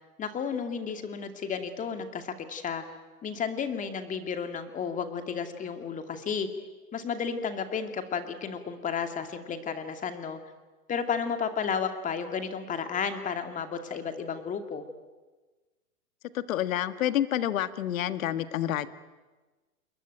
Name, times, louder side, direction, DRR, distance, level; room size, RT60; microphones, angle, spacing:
voice 1, 0.2-2.8 3.2-6.5 6.9-10.4 10.9-14.8, left 6 dB, 15° left, 7 dB, 2.4 m, -32 dB
voice 2, 16.3-18.9, left 12 dB, 60° left, 12 dB, 1.8 m, -28 dB
28.5 x 21.5 x 9.3 m, 1.2 s
hypercardioid pair, 135°, 46 cm